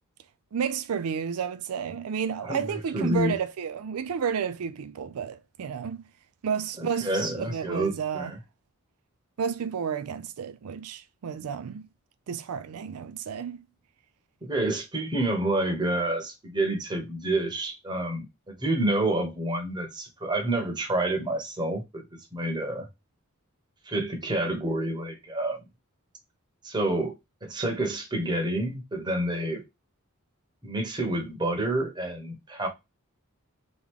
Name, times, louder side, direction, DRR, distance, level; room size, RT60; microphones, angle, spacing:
voice 1, 0.5-6.1 6.4-8.3 9.4-11.8 12.3-13.6, right 7 dB, 90° right, 0.4 m, -31 dB
voice 2, 2.4-3.3 6.8-8.4 14.4-22.0 22.3-22.9 23.9-25.6 26.6-29.6 30.6-32.7, right 1 dB, 20° right, 1.0 m, -28 dB
3.6 x 3.1 x 3.5 m
head